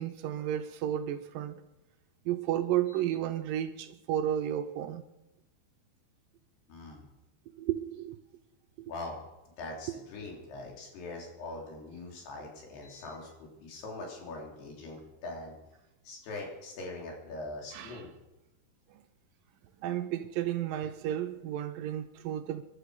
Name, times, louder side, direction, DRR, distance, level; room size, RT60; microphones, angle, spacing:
voice 1, 0.0-1.6 2.3-5.0 7.6-8.2 17.7-18.0 19.8-22.6, right 11 dB, 80° right, 2.1 m, -32 dB
voice 2, 6.7-7.1 8.9-9.2 9.6-15.5 16.1-18.1, left 2 dB, 85° left, 5.3 m, -42 dB
23.0 x 11.5 x 5.0 m
omnidirectional pair, 4.5 m